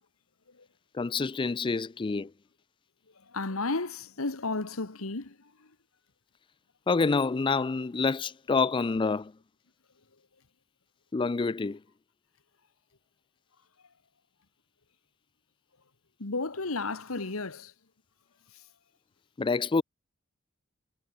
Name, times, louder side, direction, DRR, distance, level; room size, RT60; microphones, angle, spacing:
voice 1, 0.9-2.3 6.9-9.3 11.1-11.8 19.4-19.8, left 4 dB, 25° left, 0.4 m, -27 dB
voice 2, 3.2-5.7 16.2-17.7 18.5-18.6, left 3 dB, 85° left, 1.7 m, -33 dB
head